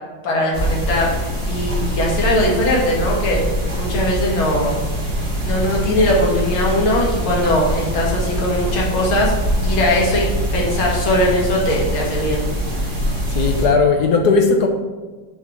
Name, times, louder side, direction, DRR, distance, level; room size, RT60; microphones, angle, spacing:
voice 1, 0.2-1.1 1.5-3.4 3.8-4.8 5.4-9.3 9.6-12.4, left 1 dB, 80° left, -3 dB, 2.7 m, -20 dB
sound 1, 0.5-13.7, equal, 15° right, 2.6 m, -23 dB
voice 2, 13.3-14.7, left 4 dB, 65° left, 4 dB, 1.1 m, -16 dB
7.4 x 4.8 x 6.0 m, 1.3 s
omnidirectional pair, 2.2 m